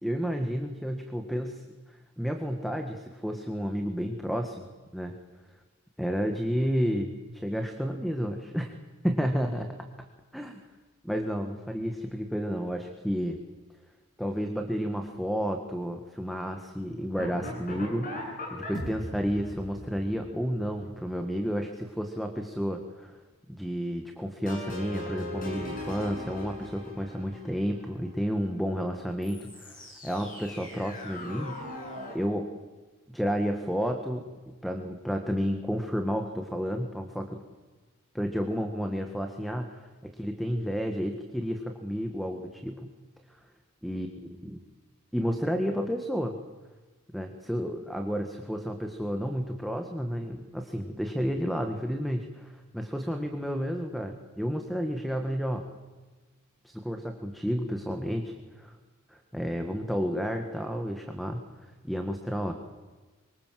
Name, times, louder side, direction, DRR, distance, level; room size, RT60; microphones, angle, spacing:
voice 1, 0.0-5.2 6.0-8.7 9.0-9.7 10.3-10.6 11.0-13.4 14.2-23.2 23.5-31.8 32.1-32.5 33.1-37.4 38.1-42.9 43.8-44.1 44.4-44.6 45.1-46.4 47.1-55.6 56.6-58.8 59.1-62.5, equal, ahead, 5 dB, 1.8 m, -31 dB
sound 1, 17.2-21.2 24.5-28.2 29.2-32.2, left 1 dB, 40° left, 7.6 m, -40 dB
26.0 x 24.5 x 7.7 m, 1.3 s
head